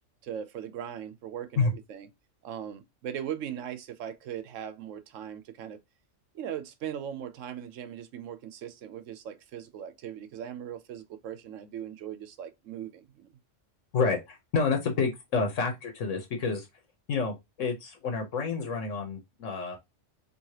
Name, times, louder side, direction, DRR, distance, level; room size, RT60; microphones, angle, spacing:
voice 1, 0.2-2.1 2.4-5.8 6.3-13.3, right 9 dB, 90° right, 1.0 m, -39 dB
voice 2, 13.9-16.7 17.1-19.8, left 4 dB, 80° left, 1.3 m, -29 dB
4.7 x 3.0 x 2.8 m
omnidirectional pair, 1.3 m